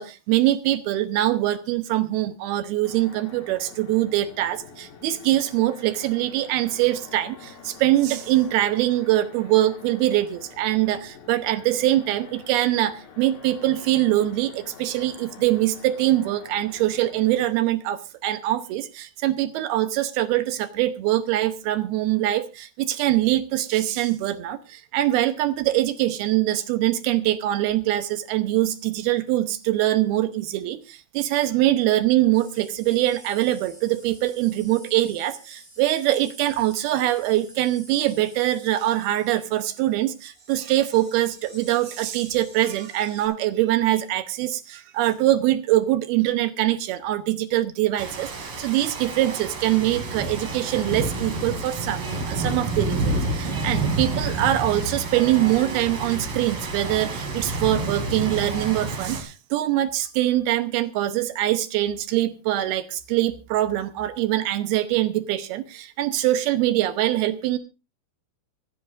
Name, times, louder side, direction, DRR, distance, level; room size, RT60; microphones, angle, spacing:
voice 1, 0.0-67.6, right 14 dB, 80° right, 10 dB, 2.7 m, -23 dB
sound 1, 2.8-17.4, left 6 dB, 85° left, 4.3 m, -47 dB
sound 2, 32.3-43.3, equal, 15° left, 7.8 m, -49 dB
Rain, 48.0-59.2, right 2 dB, 40° right, 2.5 m, -29 dB
25.5 x 9.8 x 2.5 m, 0.29 s
omnidirectional pair, 4.5 m